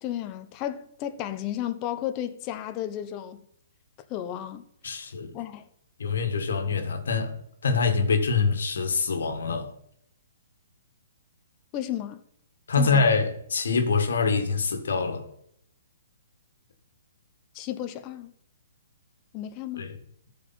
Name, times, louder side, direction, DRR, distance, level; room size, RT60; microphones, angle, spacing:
voice 1, 0.0-3.4 4.1-4.7 5.3-5.7 11.7-12.2 12.8-13.1 17.5-18.3 19.3-19.9, left 11 dB, 30° left, 0.9 m, -33 dB
voice 2, 4.8-5.3 6.0-7.4 7.6-9.7 12.7-15.2 19.8-19.9, left 4 dB, 80° left, 1.8 m, -25 dB
14.0 x 4.8 x 4.3 m
hypercardioid pair, 150°, 0 cm